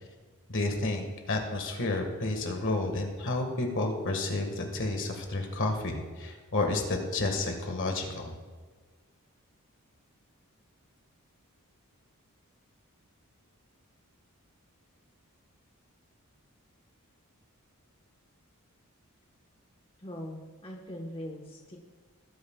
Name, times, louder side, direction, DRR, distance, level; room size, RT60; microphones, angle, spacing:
voice 1, 0.5-8.3, left 2 dB, 60° left, 3 dB, 1.7 m, -31 dB
voice 2, 20.0-21.8, equal, 25° left, -1 dB, 1.2 m, -41 dB
19.5 x 9.5 x 2.4 m, 1.4 s
head